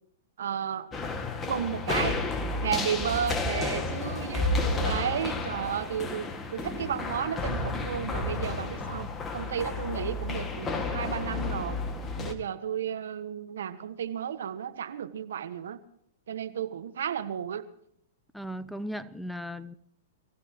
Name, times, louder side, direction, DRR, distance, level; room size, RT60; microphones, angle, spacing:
voice 1, 0.4-0.9 1.5-2.2 2.6-11.8 12.2-15.8 16.3-17.6, right 8 dB, 75° right, 11 dB, 1.4 m, -33 dB
sound 1, 0.9-12.3, left 3 dB, 20° left, 1.9 m, -31 dB
voice 2, 18.3-19.7, equal, ahead, 14 dB, 0.6 m, -37 dB
24.0 x 15.5 x 3.0 m, 0.70 s
hypercardioid pair, 115°, 0 cm